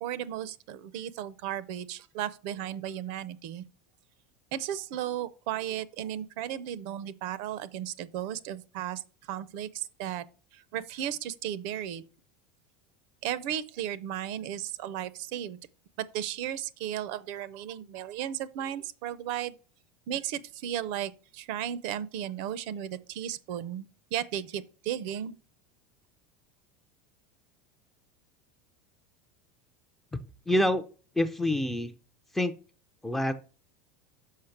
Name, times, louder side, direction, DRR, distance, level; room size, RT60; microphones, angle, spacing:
voice 1, 0.0-3.7 4.5-10.2 10.5-12.0 13.2-15.6 16.0-19.5 20.1-25.3, right 11 dB, 50° right, 0.5 m, -35 dB
voice 2, 30.5-30.8 31.2-31.9 32.3-32.6 33.0-33.3, left 1 dB, 5° left, 0.4 m, -26 dB
6.5 x 5.3 x 5.8 m
supercardioid pair, 170°, 6 cm